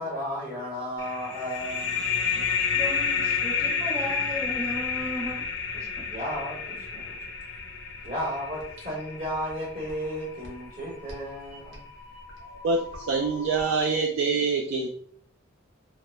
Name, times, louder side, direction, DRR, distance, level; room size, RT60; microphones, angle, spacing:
voice 1, 0.0-2.1 6.1-7.2 8.0-11.8, equal, 40° right, -5 dB, 0.9 m, -34 dB
sound 1, 1.0-10.3, left 6 dB, 60° left, 0.5 m, -30 dB
voice 2, 2.7-5.5 5.7-6.1, equal, 15° right, -1 dB, 0.7 m, -35 dB
sound 2, 4.3-14.0, left 2 dB, 65° right, 0.9 m, -48 dB
voice 3, 12.4-14.9, right 4 dB, 85° right, 3 dB, 0.3 m, -26 dB
2.8 x 2.0 x 3.2 m, 0.62 s
head